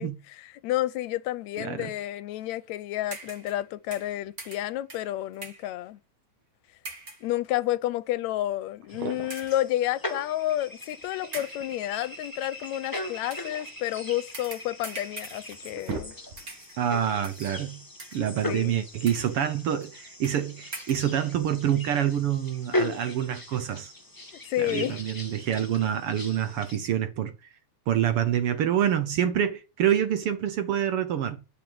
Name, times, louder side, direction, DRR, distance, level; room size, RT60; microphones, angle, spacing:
voice 1, 0.0-6.0 7.2-16.2 18.5-18.7 24.5-25.0, left 14 dB, 75° left, 2.0 m, -30 dB
voice 2, 1.6-1.9 16.8-17.8 18.1-23.9 24.6-27.3 27.9-31.4, right 10 dB, 65° right, 1.6 m, -27 dB
sound 1, 3.1-3.6 3.9-5.7 6.8-7.3 8.0-8.2 9.3-9.7 10.8-10.9 11.3-11.7 13.2-13.6 14.3-16.1 16.4-16.8 17.2-17.6 18.0-18.4 18.9-19.4 19.8-19.9 20.2-20.4 20.7-21.1, right 2 dB, 30° right, 2.6 m, -43 dB
sound 2, 8.4-8.5 8.8-9.6 11.0-11.8 13.1-14.5 15.1-15.2 15.5-16.7, right 4 dB, 80° right, 3.5 m, -40 dB
sound 3, 8.9-26.8, left 2 dB, 10° left, 1.4 m, -39 dB
11.5 x 6.9 x 8.0 m
omnidirectional pair, 3.3 m